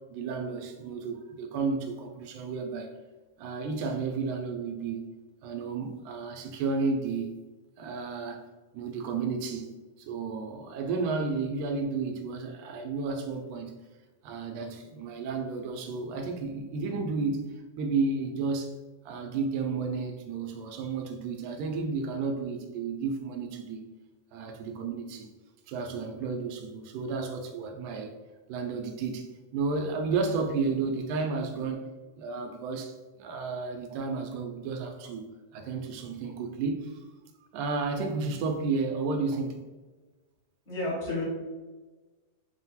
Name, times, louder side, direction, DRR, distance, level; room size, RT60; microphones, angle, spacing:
voice 1, 0.1-3.0 3.4-5.1 5.4-7.3 7.8-8.4 8.7-9.7 10.0-13.8 14.2-17.4 17.8-18.7 19.1-23.9 24.3-25.3 25.7-28.1 28.5-31.8 32.2-35.3 35.5-37.0 37.5-39.6, right 4 dB, 90° right, 2.0 m, -32 dB
voice 2, 40.7-41.3, left 2 dB, 50° left, 1.6 m, -31 dB
4.7 x 2.1 x 4.0 m
omnidirectional pair, 3.4 m